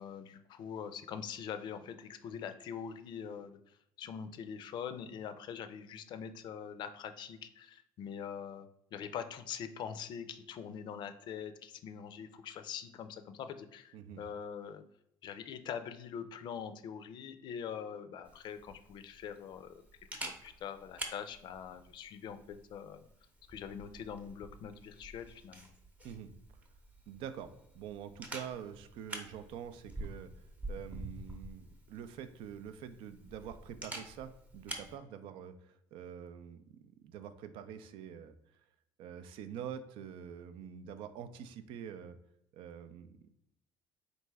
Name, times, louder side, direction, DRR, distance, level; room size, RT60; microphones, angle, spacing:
voice 1, 0.0-14.8 15.2-19.7 20.1-23.1 23.5-25.7, left 7 dB, 55° left, 10 dB, 0.4 m, -43 dB
Camera, 18.2-34.9, right 1 dB, 15° right, 0.7 m, -48 dB
voice 2, 27.1-30.3 30.7-38.3 39.0-42.1 42.5-43.2, right 8 dB, 70° right, 11 dB, 0.5 m, -46 dB
4.0 x 3.2 x 3.4 m, 0.77 s
cardioid pair, 115°, 9 cm